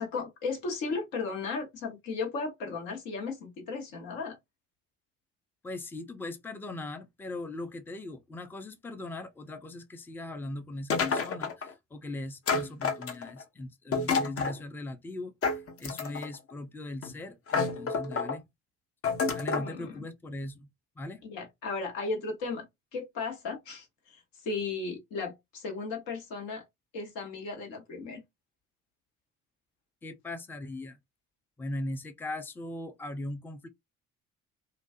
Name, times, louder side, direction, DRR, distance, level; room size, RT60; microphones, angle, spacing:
voice 1, 0.0-4.4 19.5-20.1 21.2-22.7 22.9-24.2 24.4-26.6 26.9-28.2, left 4 dB, 65° left, 1.2 m, -35 dB
voice 2, 5.6-18.4 19.3-20.7 21.0-21.2 30.0-31.0 31.6-33.7, left 2 dB, 5° left, 0.4 m, -39 dB
sound 1, 10.9-11.7 12.5-13.4 13.9-14.6 15.4-16.3 17.0-17.1 17.5-18.4 19.0-19.7, left 4 dB, 40° left, 0.7 m, -29 dB
2.4 x 2.3 x 2.4 m
hypercardioid pair, 50°, 37 cm